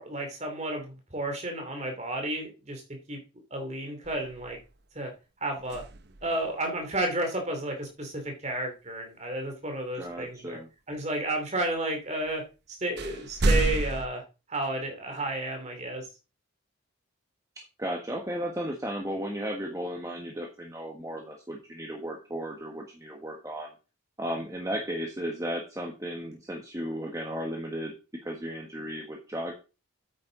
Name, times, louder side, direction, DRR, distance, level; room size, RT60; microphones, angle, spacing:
voice 1, 0.0-3.2 3.5-4.6 4.9-5.1 5.4-5.8 6.2-10.6 10.9-12.4 12.7-14.2 14.5-16.1, right 1 dB, 35° right, 4 dB, 2.7 m, -32 dB
sound 1, 4.0-4.8 5.6-6.5 10.1-10.2 12.2-12.3 13.0-14.1, right 2 dB, 50° right, 0.8 m, -29 dB
voice 2, 9.9-10.7 17.6-23.7 24.2-27.9 28.2-29.5, equal, 15° right, 0 dB, 1.4 m, -35 dB
8.8 x 8.7 x 3.9 m, 0.31 s
head